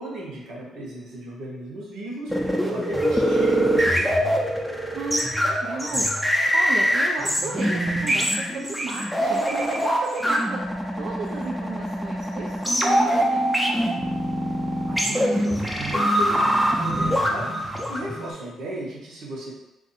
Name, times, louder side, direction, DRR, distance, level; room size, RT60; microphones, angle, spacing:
voice 1, 0.0-2.3 2.7-4.4 14.8-19.5, right 1 dB, 80° right, -4 dB, 1.0 m, -35 dB
sound 1, 2.3-18.3, equal, ahead, 0.5 m, -23 dB
voice 2, 4.9-6.1 6.5-10.6 11.0-13.8, right 3 dB, 55° right, -3 dB, 0.4 m, -34 dB
2.6 x 2.6 x 4.1 m, 0.96 s
cardioid pair, 90°, 0 cm